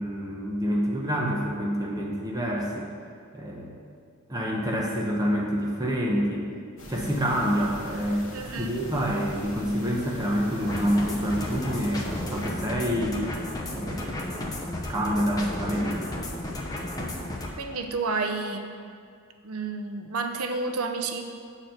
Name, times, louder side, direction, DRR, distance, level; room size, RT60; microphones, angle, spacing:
voice 1, 0.0-2.9 3.3-3.7 4.3-6.5 6.9-8.3 8.6-13.2 13.7-16.0, equal, 15° right, -2 dB, 0.8 m, -27 dB
sound 1, 6.8-12.5, equal, 65° left, 1.4 m, -41 dB
voice 2, 8.3-8.7 17.6-18.7 19.4-21.3, right 3 dB, 85° right, 5 dB, 0.7 m, -30 dB
sound 2, 10.7-17.5, left 1 dB, 15° left, 0.8 m, -33 dB
7.3 x 4.3 x 6.5 m, 2.2 s
head